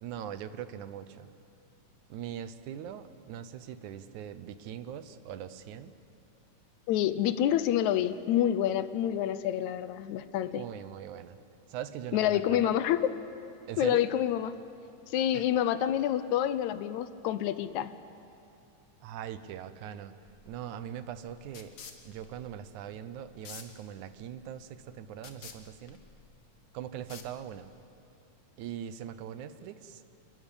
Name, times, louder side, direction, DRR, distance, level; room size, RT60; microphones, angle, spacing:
voice 1, 0.0-1.3 2.1-5.9 10.5-11.4 11.7-12.8 13.7-14.0 15.3-15.4 19.0-20.2 20.5-21.8 22.1-26.0 26.7-27.7 28.6-30.1, right 10 dB, 75° right, 12 dB, 2.2 m, -41 dB
voice 2, 6.9-10.6 12.1-13.2 13.8-14.5 15.1-17.9, left 11 dB, 75° left, 13 dB, 1.9 m, -28 dB
sound 1, 20.2-27.8, left 6 dB, 50° left, 1.4 m, -52 dB
27.0 x 14.0 x 10.0 m, 2.6 s
omnidirectional pair, 3.7 m